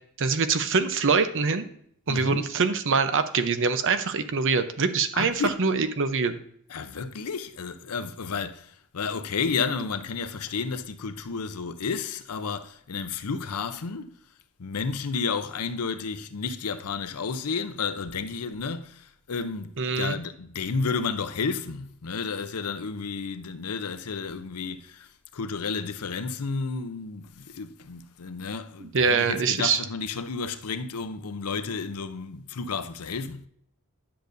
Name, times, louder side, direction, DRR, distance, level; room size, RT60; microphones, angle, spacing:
voice 1, 0.2-1.7 2.1-6.4 19.8-20.2 28.8-29.8, right 5 dB, 55° right, 0.7 m, -24 dB
voice 2, 2.1-2.5 5.1-5.6 6.7-14.1 14.6-19.7 19.9-33.5, left 5 dB, 80° left, 0.6 m, -32 dB
10.5 x 6.7 x 2.6 m
head